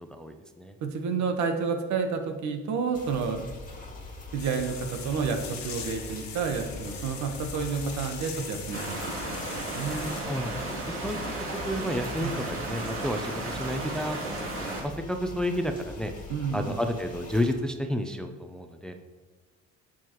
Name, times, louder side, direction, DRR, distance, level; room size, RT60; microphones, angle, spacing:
voice 1, 0.1-0.7 10.3-10.5 10.9-11.2 11.7-16.1 16.5-18.9, equal, ahead, 5 dB, 0.6 m, -31 dB
voice 2, 0.8-3.5 4.3-10.1 12.2-12.6 16.3-16.8, right 5 dB, 65° right, 5 dB, 1.3 m, -30 dB
sound 1, 2.9-17.5, left 2 dB, 25° left, 1.8 m, -43 dB
sound 2, 4.4-10.2, left 6 dB, 65° left, 1.5 m, -41 dB
sound 3, 8.7-14.8, right 2 dB, 45° right, 2.6 m, -34 dB
10.5 x 7.5 x 3.1 m, 1.2 s
cardioid pair, 105°, 31 cm